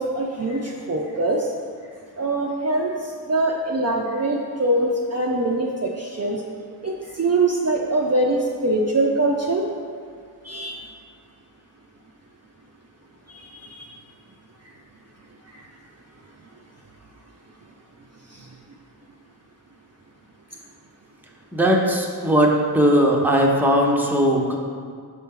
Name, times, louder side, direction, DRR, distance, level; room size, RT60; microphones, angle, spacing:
voice 1, 0.0-1.5 2.2-6.4 6.8-9.6 10.4-10.8 13.3-13.8 15.5-15.7 18.4-18.5, right 2 dB, 40° right, -1 dB, 0.5 m, -23 dB
voice 2, 21.5-24.6, equal, 5° right, -1 dB, 0.8 m, -18 dB
6.8 x 4.3 x 3.6 m, 2.1 s
wide cardioid pair, 70°, 42 cm